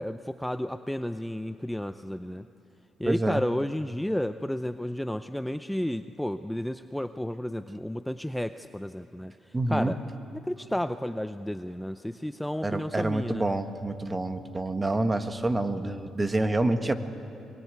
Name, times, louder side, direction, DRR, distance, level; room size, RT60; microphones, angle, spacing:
voice 1, 0.0-2.5 3.0-9.3 9.7-10.0 10.3-13.5, left 1 dB, 5° left, 10 dB, 0.6 m, -32 dB
voice 2, 3.0-3.4 9.5-10.0 12.6-16.9, right 2 dB, 20° right, 9 dB, 1.5 m, -27 dB
24.0 x 22.5 x 9.6 m, 2.8 s
cardioid pair, 90°, 0 cm